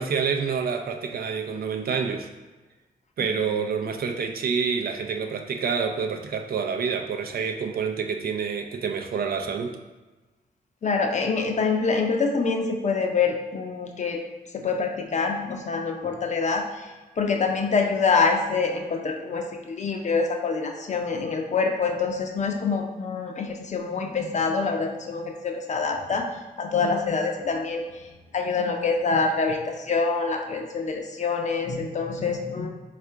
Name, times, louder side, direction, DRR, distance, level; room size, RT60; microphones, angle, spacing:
voice 1, 0.0-2.3 3.2-9.8, right 6 dB, 75° right, 5 dB, 0.4 m, -27 dB
voice 2, 10.8-14.2 14.5-26.2 26.6-28.0 28.3-32.7, left 4 dB, 50° left, 3 dB, 0.5 m, -26 dB
3.6 x 2.4 x 4.4 m, 1.2 s
wide cardioid pair, 100°, 16 cm